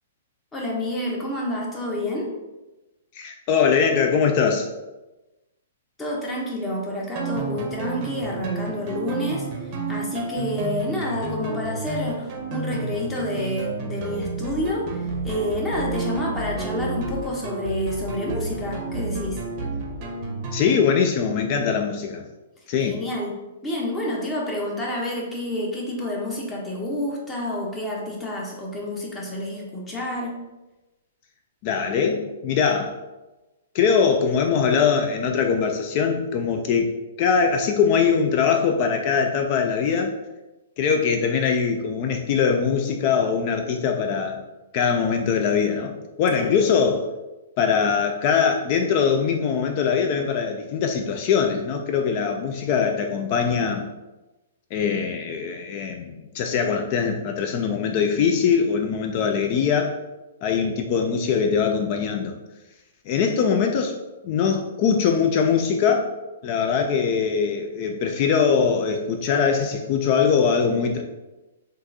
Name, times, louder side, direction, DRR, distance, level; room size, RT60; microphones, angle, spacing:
voice 1, 0.5-2.3 6.0-19.4 22.9-23.4 23.6-30.4 46.3-46.5, left 1 dB, 15° left, -2 dB, 0.8 m, -29 dB
voice 2, 3.1-4.7 20.5-22.3 22.7-23.0 31.6-33.0 33.7-36.9 37.2-40.1 40.8-44.4 44.7-47.1 47.6-53.9 54.7-59.9 60.4-62.4 63.1-64.0 64.2-66.1 66.4-71.0, left 6 dB, 40° left, 4 dB, 0.3 m, -22 dB
sound 1, 7.2-20.9, right 3 dB, 40° right, 0.6 m, -31 dB
3.6 x 2.4 x 2.7 m, 1.1 s
hypercardioid pair, 140°, 0 cm